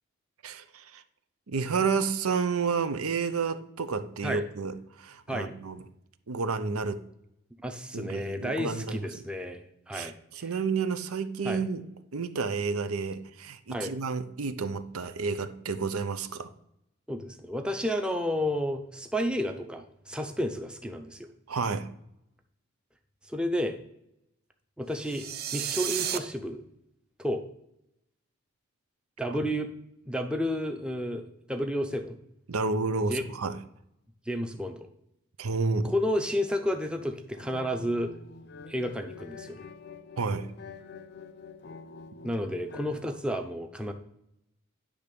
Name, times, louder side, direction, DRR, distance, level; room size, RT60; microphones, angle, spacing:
voice 1, 0.4-1.0 1.5-5.8 6.3-7.0 7.9-9.1 9.9-11.8 12.1-16.5 21.5-21.9 32.5-33.6 35.4-35.9 40.2-40.5, right 4 dB, 90° right, 11 dB, 0.7 m, -30 dB
voice 2, 7.6-10.1 10.4-10.5 11.4-11.6 13.7-13.9 17.1-21.3 23.2-23.8 24.8-25.3 25.5-26.6 27.2-27.4 29.2-29.7 30.1-32.2 33.1-33.2 34.3-34.8 35.8-38.1 38.7-39.6 42.2-43.9, equal, 5° right, 5 dB, 0.6 m, -31 dB
sound 1, 25.0-26.2, right 9 dB, 45° right, 0.5 m, -32 dB
sound 2, 37.3-43.0, left 4 dB, 50° left, 0.6 m, -47 dB
10.0 x 3.5 x 6.7 m, 0.79 s
head